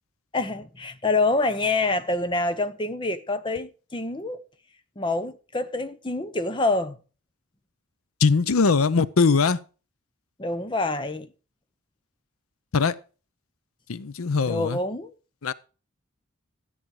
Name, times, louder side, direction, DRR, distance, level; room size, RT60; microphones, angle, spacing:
voice 1, 0.3-4.4 5.0-7.0 10.4-11.3 14.5-15.1, left 2 dB, 25° left, 0.8 m, -26 dB
voice 2, 8.2-9.6 12.7-13.0 13.9-14.8 15.4-15.5, left 4 dB, 90° left, 0.6 m, -21 dB
13.0 x 8.9 x 4.8 m
head